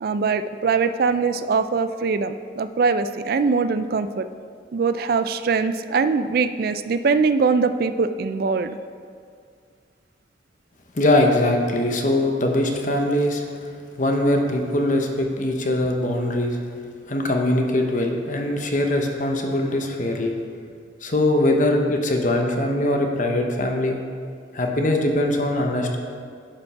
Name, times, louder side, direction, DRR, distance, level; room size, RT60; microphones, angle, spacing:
voice 1, 0.0-4.3 4.7-8.8, right 4 dB, 55° right, 11 dB, 0.3 m, -22 dB
voice 2, 11.0-13.4 14.0-16.6 17.1-20.3 21.0-24.0 24.5-26.0, left 1 dB, 45° left, 3 dB, 0.9 m, -21 dB
10.5 x 5.2 x 5.6 m, 2.1 s
head